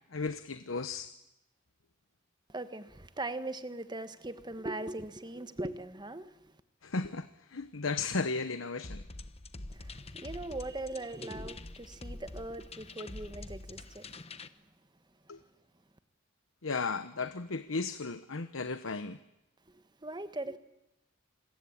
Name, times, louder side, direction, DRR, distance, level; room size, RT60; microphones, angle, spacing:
voice 1, 0.1-1.1 6.8-9.0 15.3-15.4 16.6-19.2, left 4 dB, 80° left, 1.0 m, -35 dB
voice 2, 2.5-6.6 9.7-14.1 19.7-20.6, right 2 dB, 20° right, 1.4 m, -40 dB
sound 1, 8.8-14.5, left 2 dB, 30° left, 1.1 m, -45 dB
27.0 x 22.0 x 8.7 m
head